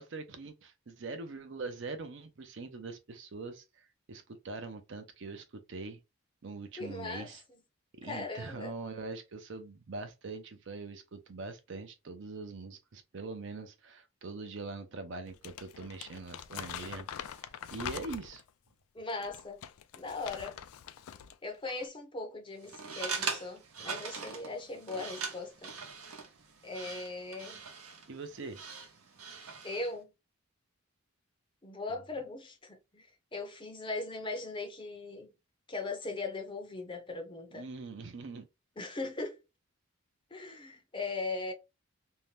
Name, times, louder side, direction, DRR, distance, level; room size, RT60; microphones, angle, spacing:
voice 1, 0.0-6.0 6.4-7.4 8.0-18.4 28.1-28.6 31.9-32.0 37.5-38.4, right 3 dB, 55° right, 0.5 m, -43 dB
voice 2, 6.8-7.3 8.0-8.7 18.9-19.6 19.9-20.6 21.4-25.7 26.6-27.6 29.6-30.1 31.6-35.3 35.7-37.6 38.8-39.4 40.3-41.5, left 3 dB, 20° left, 0.6 m, -39 dB
Crumpling crinkling, 15.3-18.5 19.1-21.4 21.6-21.9, left 9 dB, 80° left, 0.3 m, -44 dB
sound 1, 22.6-29.9, right 5 dB, 80° right, 0.8 m, -41 dB
2.7 x 2.1 x 3.1 m
head